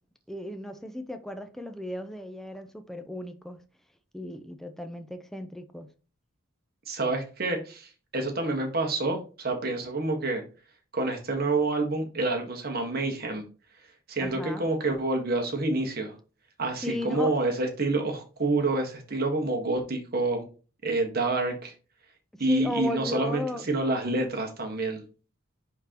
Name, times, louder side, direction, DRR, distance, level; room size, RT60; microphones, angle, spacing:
voice 1, 0.3-3.6 4.1-5.9 14.2-14.6 16.8-17.3 22.5-23.7, left 1 dB, ahead, 0.5 m, -35 dB
voice 2, 6.9-10.4 10.9-13.4 14.1-16.1 16.6-20.5 20.8-21.7 22.4-25.0, right 2 dB, 45° right, 1.4 m, -28 dB
10.5 x 3.8 x 2.9 m
head